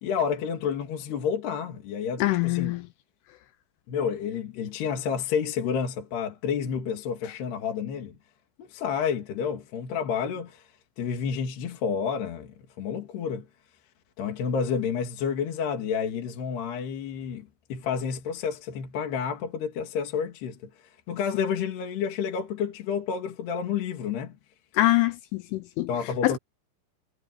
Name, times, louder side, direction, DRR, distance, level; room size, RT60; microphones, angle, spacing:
voice 1, 0.0-2.7 3.9-8.2 8.6-10.7 11.0-13.5 14.2-20.7 21.1-24.4 25.9-26.4, left 7 dB, 55° left, 4.3 m, -30 dB
voice 2, 2.2-2.8 24.8-25.9 26.2-26.4, left 17 dB, 80° left, 3.2 m, -24 dB
omnidirectional pair, 5.9 m